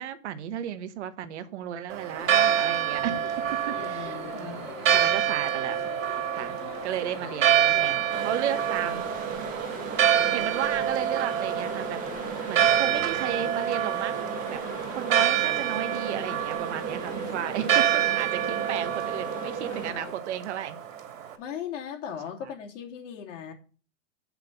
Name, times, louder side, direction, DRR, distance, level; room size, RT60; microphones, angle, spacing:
voice 1, 0.0-5.8 6.3-6.6 6.8-9.5 10.3-12.0 12.5-20.8, right 10 dB, 60° right, 11 dB, 1.2 m, -34 dB
Church bell, 1.9-21.3, right 10 dB, 75° right, 2.9 m, -27 dB
sound 1, 2.2-20.1, left 6 dB, 30° left, 2.5 m, -42 dB
voice 2, 3.7-4.6 17.2-17.5 21.4-23.5, left 8 dB, 65° left, 1 dB, 3.2 m, -38 dB
sound 2, 8.1-19.9, right 7 dB, 20° right, 1.4 m, -36 dB
8.9 x 6.0 x 6.9 m, 0.38 s
hypercardioid pair, 155°, 40 cm